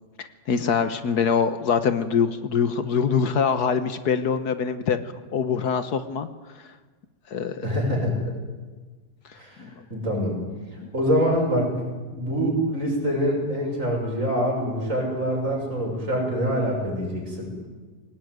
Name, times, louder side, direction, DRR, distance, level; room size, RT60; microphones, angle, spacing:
voice 1, 0.2-5.0 5.3-6.3 7.3-7.7 9.6-9.7 10.8-10.9, left 6 dB, 65° left, 11 dB, 1.6 m, -24 dB
voice 2, 7.6-8.3 9.3-10.4 10.7-17.5, equal, 45° right, 0 dB, 6.7 m, -25 dB
22.0 x 18.5 x 9.5 m, 1.4 s
omnidirectional pair, 1.9 m